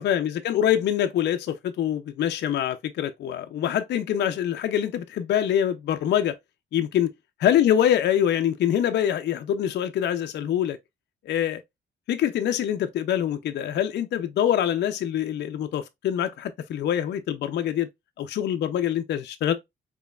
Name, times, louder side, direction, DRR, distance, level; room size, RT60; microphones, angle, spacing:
voice 1, 0.0-6.4 6.7-7.1 7.4-10.8 11.2-11.6 12.1-17.9 18.2-19.5, left 10 dB, 60° left, 0.4 m, -24 dB
4.5 x 2.8 x 2.3 m
cardioid pair, 90°, 20 cm